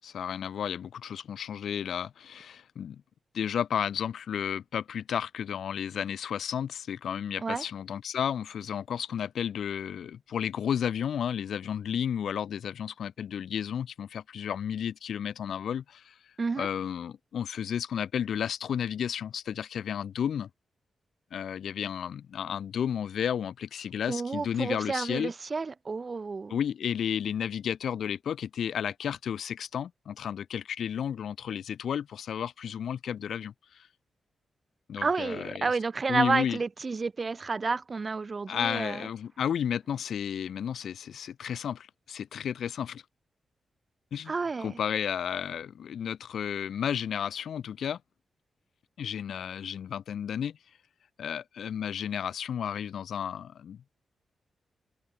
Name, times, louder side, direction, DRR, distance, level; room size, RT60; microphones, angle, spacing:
voice 1, 0.0-3.0 3.3-16.1 16.6-20.5 21.3-25.3 26.5-33.9 34.9-35.7 36.1-36.6 38.5-43.0 44.1-44.3 44.6-48.0 49.0-50.6 51.2-53.8, left 8 dB, 80° left, 6.5 m, -32 dB
voice 2, 24.1-26.6 35.0-39.1 44.3-44.8, right 4 dB, 35° right, 2.8 m, -30 dB
cardioid pair, 100°, 0 cm